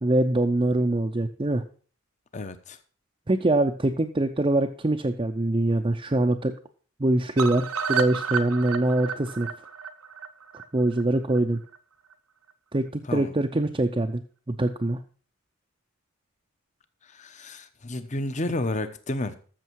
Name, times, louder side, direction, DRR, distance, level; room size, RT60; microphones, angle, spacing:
voice 1, 0.0-1.6 3.3-6.5 7.0-9.5 10.7-11.6 12.7-14.2 14.5-15.0, right 1 dB, 25° right, 3 dB, 0.6 m, -24 dB
voice 2, 2.3-2.8 13.0-13.3 17.0-19.4, left 2 dB, 35° left, 10 dB, 0.9 m, -31 dB
sound 1, 7.4-11.4 11.7-11.8 12.1-12.2 12.5-12.6, right 6 dB, 80° right, 1.0 m, -31 dB
13.5 x 6.7 x 4.6 m, 0.42 s
head